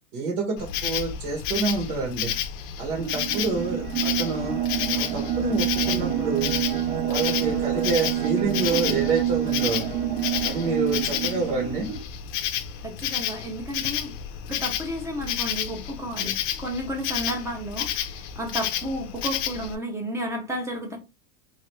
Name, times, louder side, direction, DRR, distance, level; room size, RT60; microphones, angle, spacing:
voice 1, 0.1-2.3 2.8-4.6 4.9-6.5 7.1-9.8 10.4-11.9, right 4 dB, 80° right, -1 dB, 1.4 m, -28 dB
Insect, 0.6-19.8, left 10 dB, 45° left, 0.5 m, -31 dB
sound 1, 2.8-12.0, right 11 dB, 50° right, 0.6 m, -27 dB
voice 2, 12.8-14.1 14.5-21.0, equal, 5° right, 2 dB, 0.5 m, -32 dB
3.0 x 2.4 x 3.0 m, 0.27 s
supercardioid pair, 145°, 44 cm